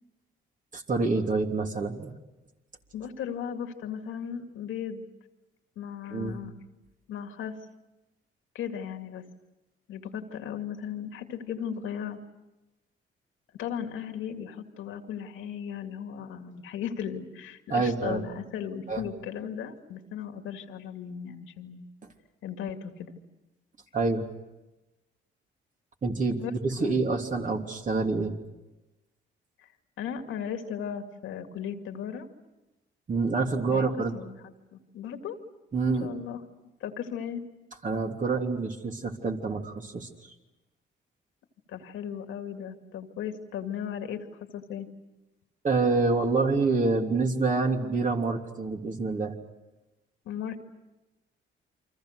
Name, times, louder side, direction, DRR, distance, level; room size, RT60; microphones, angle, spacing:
voice 1, 0.7-2.1 6.1-6.4 17.7-18.2 18.9-19.0 23.9-24.2 26.0-28.4 33.1-34.1 35.7-36.1 37.8-40.3 45.6-49.3, right 3 dB, 40° right, 3 dB, 3.1 m, -27 dB
voice 2, 2.9-5.1 5.8-6.5 7.1-7.6 8.5-9.2 9.9-12.2 13.6-21.9 22.4-23.2 26.4-26.5 26.8-26.9 29.6-29.7 30.0-32.3 33.7-33.9 34.1-35.4 35.8-36.4 36.8-37.5 41.7-44.9 50.2-50.6, left 8 dB, 85° left, 6 dB, 2.2 m, -36 dB
29.5 x 24.5 x 6.6 m, 1.0 s
cardioid pair, 90°, 20 cm